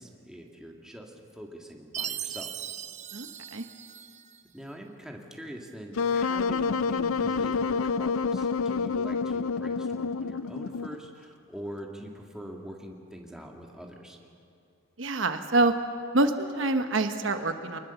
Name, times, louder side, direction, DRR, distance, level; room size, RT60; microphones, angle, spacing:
voice 1, 0.0-2.6 4.5-14.2, equal, 5° right, 0 dB, 1.9 m, -43 dB
Chime, 1.9-4.4, right 9 dB, 35° right, 0.7 m, -38 dB
voice 2, 3.1-3.6 15.0-15.7 16.1-17.8, right 2 dB, 65° right, 7 dB, 1.0 m, -26 dB
Wind instrument woodwind instrument, 6.0-11.1, left 5 dB, 80° left, 0.5 m, -28 dB
24.5 x 20.0 x 7.0 m, 2.5 s
head